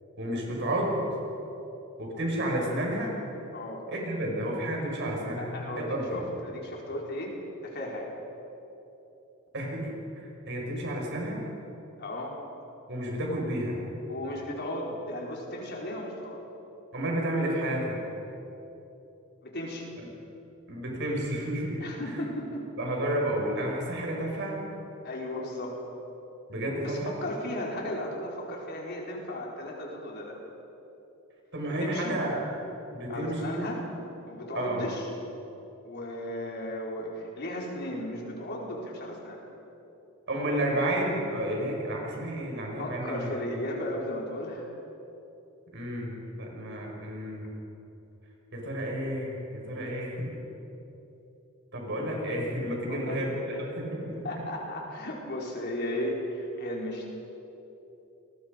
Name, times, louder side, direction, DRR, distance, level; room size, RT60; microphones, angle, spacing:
voice 1, 0.2-1.0 2.0-3.1 3.9-5.5 5.8-6.3 9.5-9.9 10.5-11.4 12.9-13.8 16.9-18.0 20.7-21.8 22.8-24.6 26.5-27.1 31.5-32.4 32.9-33.6 34.5-34.9 40.3-43.3 45.7-47.4 48.5-50.2 51.7-54.4, right 1 dB, 60° right, -1 dB, 6.1 m, -31 dB
voice 2, 3.5-3.8 5.4-7.3 7.6-8.1 12.0-12.3 14.1-16.4 19.4-19.9 21.8-22.6 25.0-25.8 26.8-30.4 31.7-32.2 33.1-33.9 34.3-35.1 35.8-39.4 42.8-44.7 47.0-47.1 52.9-53.2 53.5-53.6 54.2-57.0, left 1 dB, 55° left, -2 dB, 4.6 m, -35 dB
28.5 x 21.5 x 5.3 m, 3.0 s
head